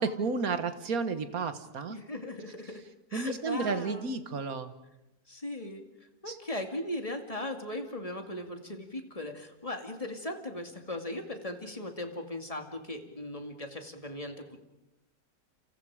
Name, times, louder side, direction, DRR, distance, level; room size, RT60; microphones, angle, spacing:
voice 1, 0.0-2.0 3.1-4.7 6.3-6.4, right 4 dB, 55° right, 10 dB, 1.8 m, -32 dB
voice 2, 1.9-2.8 3.1-4.1 5.3-5.8 6.2-14.6, left 1 dB, 20° left, 5 dB, 2.4 m, -38 dB
29.5 x 28.0 x 5.0 m, 0.93 s
omnidirectional pair, 1.9 m